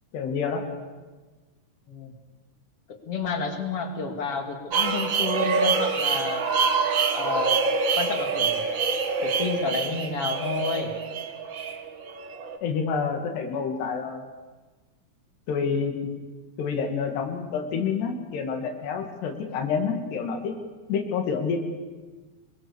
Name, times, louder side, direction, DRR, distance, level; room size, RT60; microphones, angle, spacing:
voice 1, 0.1-0.6 12.6-14.3 15.5-15.9 16.6-20.5 20.9-21.6, left 6 dB, 90° left, 4 dB, 4.5 m, -28 dB
voice 2, 2.9-6.5 7.1-7.6 8.0-8.7 9.2-10.9, left 4 dB, 40° left, 4 dB, 3.0 m, -30 dB
sound 1, 4.7-12.6, right 5 dB, 85° right, 1.0 m, -26 dB
26.5 x 22.0 x 7.2 m, 1.3 s
omnidirectional pair, 4.6 m